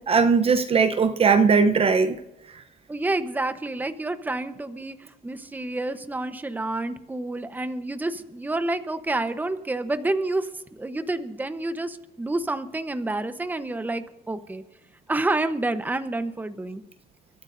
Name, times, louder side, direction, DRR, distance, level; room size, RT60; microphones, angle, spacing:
voice 1, 0.0-2.2, right 5 dB, 35° right, 0.8 m, -19 dB
voice 2, 2.9-5.0 5.2-10.5 10.8-14.6 15.1-16.8, right 2 dB, 10° right, 1.0 m, -28 dB
29.5 x 13.5 x 2.7 m
cardioid pair, 110°, 17 cm